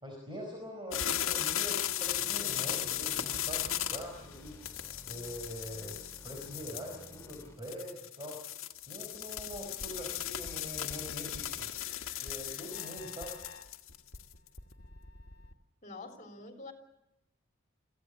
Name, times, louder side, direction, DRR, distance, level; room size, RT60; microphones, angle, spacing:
voice 1, 0.0-4.6 5.0-6.0 6.2-8.4 8.9-11.7 12.2-13.4, equal, 25° right, 0 dB, 5.1 m, -43 dB
sound 1, 0.9-14.6, left 11 dB, 85° left, 1.6 m, -36 dB
sound 2, 2.1-7.8, equal, 15° left, 3.2 m, -54 dB
sound 3, 9.4-15.5, left 2 dB, 60° left, 1.8 m, -51 dB
voice 2, 15.8-16.7, left 3 dB, 40° left, 4 dB, 3.6 m, -46 dB
24.5 x 15.5 x 8.3 m, 0.89 s
head